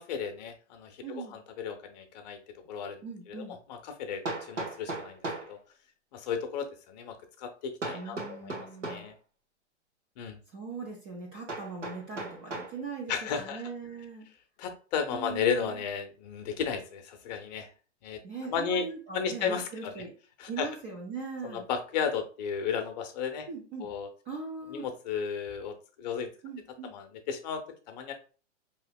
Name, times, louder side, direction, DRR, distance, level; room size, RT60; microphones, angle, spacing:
voice 1, 0.1-2.4 2.7-3.0 3.3-3.4 3.7-5.6 6.1-9.1 10.2-10.4 13.1-13.6 14.6-17.7 18.0-18.2 18.5-18.9 19.1-20.0 20.4-20.7 21.4-23.5 23.8-24.1 24.7-26.3 26.9-28.1, left 7 dB, 35° left, 6 dB, 0.7 m, -34 dB
voice 2, 1.0-1.4 3.0-3.6 7.9-9.1 10.5-13.1 13.4-14.3 15.1-15.8 18.2-20.1 20.5-21.7 23.5-23.9 24.3-24.9 26.4-26.9, right 4 dB, 15° right, -1 dB, 0.3 m, -40 dB
Hammer, 2.6-2.7 4.2-5.5 7.8-9.1 11.5-12.8, right 2 dB, 85° right, 1.3 m, -37 dB
4.6 x 3.0 x 2.2 m, 0.36 s
figure-of-eight pair, 110°, 36 cm